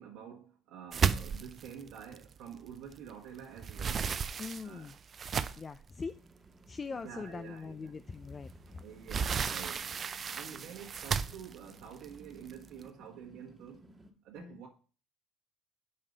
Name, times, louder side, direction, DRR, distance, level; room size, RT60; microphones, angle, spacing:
voice 1, 0.0-4.1 4.6-4.9 7.0-7.9 8.8-9.9 10.3-13.9 14.2-14.7, right 8 dB, 80° right, 1.5 m, -48 dB
sound 1, 0.9-3.1 3.4-5.8 6.5-6.6 7.0-7.1 8.5-12.8, right 6 dB, 40° right, 0.5 m, -34 dB
voice 2, 4.4-4.9 5.6-6.2 6.7-8.8 14.4-14.6, left 4 dB, 30° left, 0.4 m, -42 dB
sound 2, 6.1-14.1, right 1 dB, 10° right, 1.4 m, -59 dB
5.6 x 4.9 x 6.5 m
supercardioid pair, 85°, 0 cm